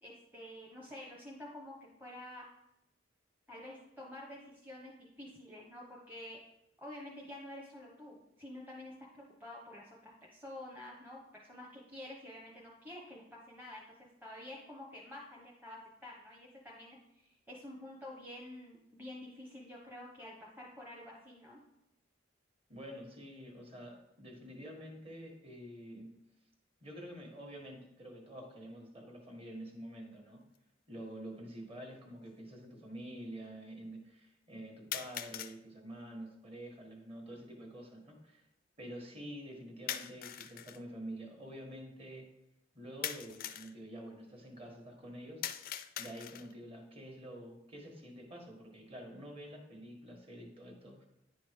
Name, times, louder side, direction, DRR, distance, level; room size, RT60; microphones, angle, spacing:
voice 1, 0.0-2.4 3.5-6.4 6.8-13.8 14.2-21.6, left 1 dB, 10° right, -3 dB, 0.9 m, -49 dB
voice 2, 22.7-26.1 26.8-30.5 30.9-38.5 38.8-42.3 42.7-45.4 46.0-51.0, right 1 dB, 30° right, 2 dB, 1.5 m, -48 dB
sound 1, 30.6-30.7 31.6-31.7 34.9-35.6 39.9-40.8 43.0-43.7 45.4-46.6, left 11 dB, 45° left, 0.4 m, -41 dB
9.8 x 5.0 x 3.6 m, 0.85 s
head